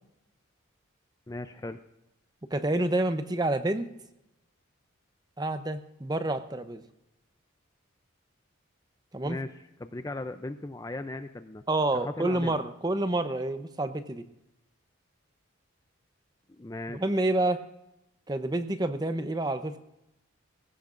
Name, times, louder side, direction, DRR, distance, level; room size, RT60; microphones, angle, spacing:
voice 1, 1.3-1.8 9.2-9.5 9.8-11.6 11.9-12.6 16.5-17.2, left 2 dB, 15° left, 9 dB, 0.4 m, -37 dB
voice 2, 2.5-3.9 5.4-6.8 9.1-9.4 11.7-14.2 16.9-17.6 18.3-19.8, right 2 dB, 20° right, 10 dB, 0.7 m, -28 dB
20.0 x 16.5 x 2.5 m, 0.88 s
head